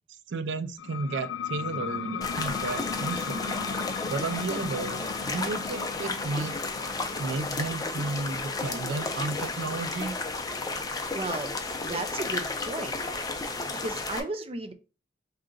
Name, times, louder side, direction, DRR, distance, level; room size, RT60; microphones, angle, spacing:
voice 1, 0.3-3.7 4.1-6.6 7.2-10.2, right 3 dB, 85° right, 0.4 m, -33 dB
sound 1, 0.8-12.1, left 7 dB, 90° left, 0.3 m, -38 dB
sound 2, 2.2-14.2, left 3 dB, 20° left, 0.5 m, -33 dB
voice 2, 11.1-11.5 11.8-13.0 13.8-14.7, right 2 dB, 35° right, 0.5 m, -34 dB
3.8 x 2.8 x 3.7 m
head